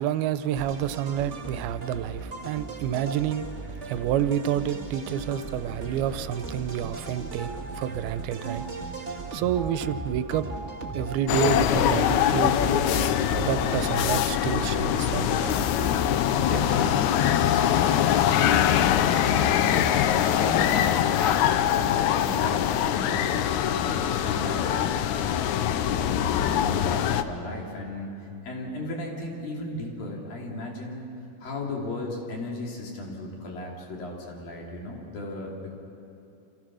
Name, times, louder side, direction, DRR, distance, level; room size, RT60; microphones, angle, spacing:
voice 1, 0.0-8.7 9.3-10.5 10.9-12.6 13.4-15.6, right 10 dB, 85° right, 12 dB, 2.7 m, -29 dB
sound 1, 0.5-17.0, right 3 dB, 35° right, 1.2 m, -37 dB
Telephone, 4.5-4.7 4.9-5.1 6.0-6.1 6.4-6.5 7.3-7.6 8.3-8.7 9.4-9.8 10.4-10.7 11.5-11.6 11.9-12.6, right 2 dB, 15° left, 5.0 m, -43 dB
sound 2, 11.3-27.2, left 10 dB, 80° left, 1.7 m, -23 dB
voice 2, 16.1-25.0 25.5-31.1 31.4-35.7, left 1 dB, 65° left, -1 dB, 4.8 m, -35 dB
29.5 x 27.0 x 6.3 m, 2.7 s
omnidirectional pair, 4.3 m